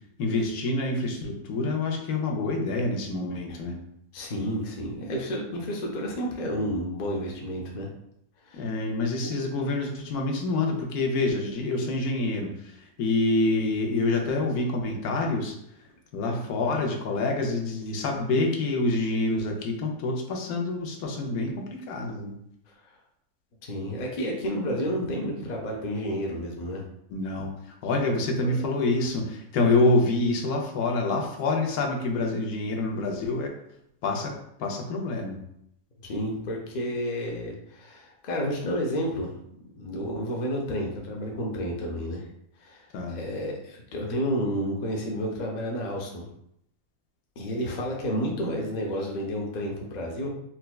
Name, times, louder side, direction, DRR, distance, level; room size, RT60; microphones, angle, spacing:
voice 1, 0.2-3.8 8.5-12.5 12.8-15.5 16.1-22.3 27.1-27.5 27.8-33.5 34.0-34.3 34.6-35.4 42.9-43.2, left 2 dB, 85° left, 2 dB, 1.1 m, -27 dB
voice 2, 4.1-7.9 8.5-8.7 9.2-9.5 23.6-26.8 36.0-39.3 39.8-42.2 42.6-42.8 43.1-46.2 47.4-50.3, equal, 55° left, -1 dB, 0.5 m, -31 dB
4.1 x 2.2 x 2.3 m, 0.75 s
omnidirectional pair, 1.6 m